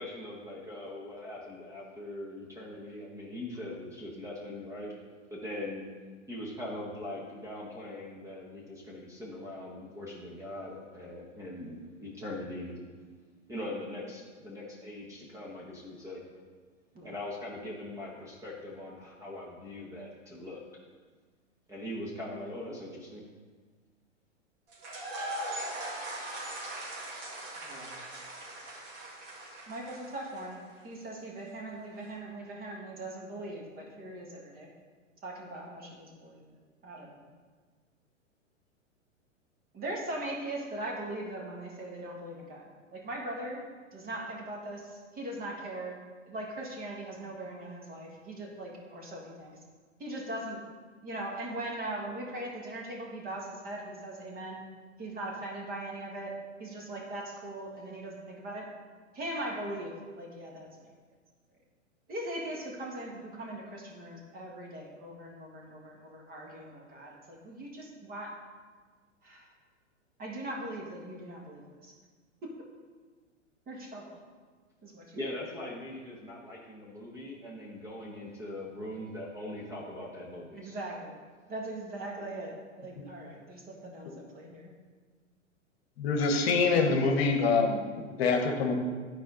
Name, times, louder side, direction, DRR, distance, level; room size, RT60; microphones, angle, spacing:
voice 1, 0.0-4.9 5.3-5.8 6.3-12.8 13.5-16.2 17.0-20.6 21.7-23.2 75.2-80.8, left 1 dB, 10° right, -4 dB, 1.0 m, -41 dB
sound 1, 24.7-30.7, right 1 dB, 45° right, 2.2 m, -40 dB
voice 2, 27.6-28.0 29.7-34.7 35.2-36.6 36.8-37.2 39.7-43.6 43.9-46.0 46.2-49.5 50.0-50.6 51.0-54.6 55.0-56.3 56.6-58.7 59.1-60.7 62.1-68.3 69.2-69.5 70.2-71.9 72.4-72.5 73.7-74.1 74.8-75.2 80.5-81.2 81.5-84.1 84.3-84.7, right 1 dB, 25° right, -1 dB, 1.6 m, -40 dB
voice 3, 86.0-87.9 88.2-88.7, left 4 dB, 50° left, 4 dB, 1.1 m, -25 dB
11.0 x 4.8 x 3.9 m, 1.5 s
hypercardioid pair, 110°, 38 cm